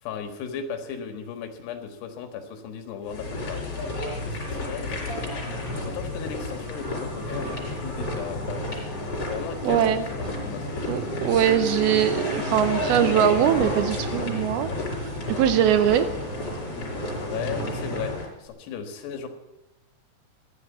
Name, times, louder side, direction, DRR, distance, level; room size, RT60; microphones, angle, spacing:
voice 1, 0.0-3.6 4.3-5.5 5.9-9.0 9.3-11.0 17.0-19.3, left 7 dB, 80° left, 6 dB, 3.7 m, -36 dB
sound 1, 3.1-18.3, left 1 dB, 35° left, 5.1 m, -31 dB
voice 2, 9.6-10.0 10.9-14.7 15.3-16.1, right 10 dB, 80° right, 11 dB, 2.5 m, -21 dB
14.5 x 11.0 x 8.7 m, 0.97 s
omnidirectional pair, 4.8 m